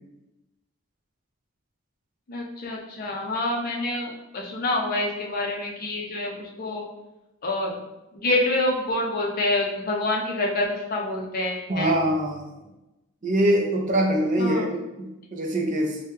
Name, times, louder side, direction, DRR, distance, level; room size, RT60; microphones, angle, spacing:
voice 1, 2.3-6.8 7.4-7.8 8.1-11.9 14.4-14.7, left 2 dB, 40° left, -1 dB, 0.5 m, -27 dB
voice 2, 11.7-12.4 13.2-16.0, right 1 dB, 35° right, 1 dB, 0.4 m, -23 dB
3.2 x 2.1 x 3.2 m, 0.98 s
head